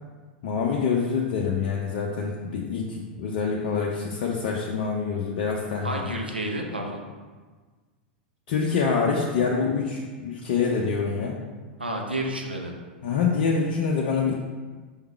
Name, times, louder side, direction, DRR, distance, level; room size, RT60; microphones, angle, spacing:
voice 1, 0.4-6.0 8.5-11.4 13.0-14.4, left 5 dB, 55° left, -2 dB, 0.7 m, -26 dB
voice 2, 5.8-7.0 11.8-12.7, right 1 dB, 90° right, 1 dB, 0.8 m, -30 dB
5.6 x 3.7 x 4.5 m, 1.4 s
figure-of-eight pair, 95°, 5 cm